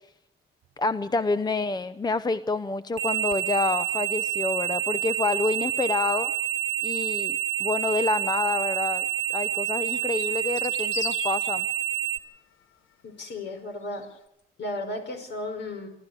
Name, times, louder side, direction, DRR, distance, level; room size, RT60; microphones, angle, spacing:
voice 1, 0.8-6.3 6.8-9.0 9.3-11.7, left 3 dB, 20° left, 13 dB, 0.8 m, -28 dB
sound 1, 3.0-12.2, right 13 dB, 70° right, 1.2 m, -28 dB
sound 2, 8.8-8.9 9.8-11.5 13.8-14.2, left 7 dB, 85° left, 1.6 m, -37 dB
voice 2, 13.0-14.1 14.6-15.9, left 2 dB, 60° left, 5 dB, 5.6 m, -34 dB
27.0 x 12.5 x 8.2 m, 0.82 s
cardioid pair, 90°, 20 cm